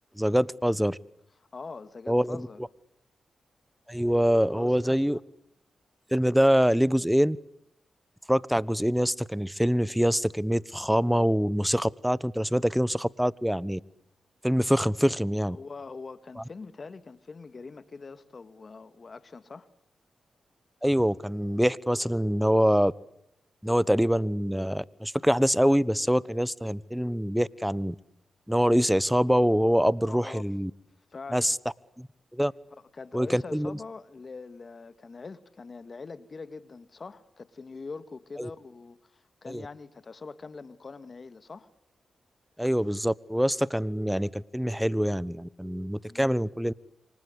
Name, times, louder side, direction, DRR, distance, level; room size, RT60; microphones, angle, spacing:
voice 1, 0.2-1.0 2.1-2.5 3.9-5.2 6.1-7.4 8.3-13.8 14.4-15.6 20.8-22.9 23.6-28.0 28.5-30.7 31.3-31.6 32.0-32.1 32.3-32.5 33.1-33.8 38.4-38.5 39.5-39.6 42.6-46.7, equal, 5° right, 1.1 m, -25 dB
voice 2, 1.5-2.6 4.5-5.2 15.4-19.7 30.0-30.5 31.1-31.5 32.8-41.7 46.0-46.5, left 4 dB, 50° left, 2.2 m, -43 dB
28.5 x 25.0 x 8.2 m
cardioid pair, 60°, 0 cm